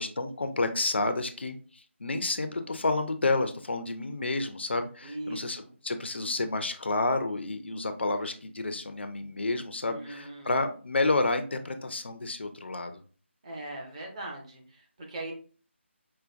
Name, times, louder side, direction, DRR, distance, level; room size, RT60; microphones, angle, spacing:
voice 1, 0.0-13.0, left 2 dB, 60° left, 8 dB, 0.5 m, -30 dB
voice 2, 5.0-5.7 9.8-10.6 13.4-15.3, right 1 dB, 30° right, 0 dB, 0.9 m, -40 dB
5.0 x 2.2 x 2.4 m, 0.39 s
figure-of-eight pair, 155°, 7 cm